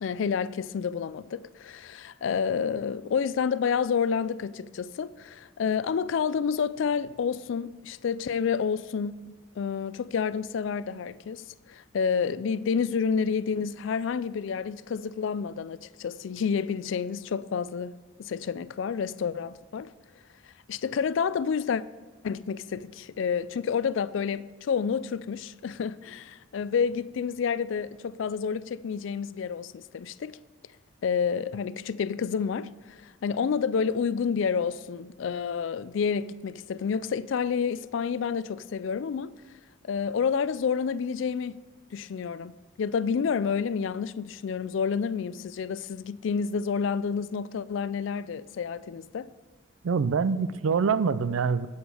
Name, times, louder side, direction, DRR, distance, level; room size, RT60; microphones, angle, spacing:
voice 1, 0.0-19.9 20.4-21.8 22.2-30.4 31.0-39.3 39.8-41.6 41.9-49.3, left 6 dB, 65° left, 0.3 m, -29 dB
voice 2, 49.8-51.7, right 5 dB, 80° right, 0.4 m, -25 dB
8.1 x 8.0 x 4.8 m
head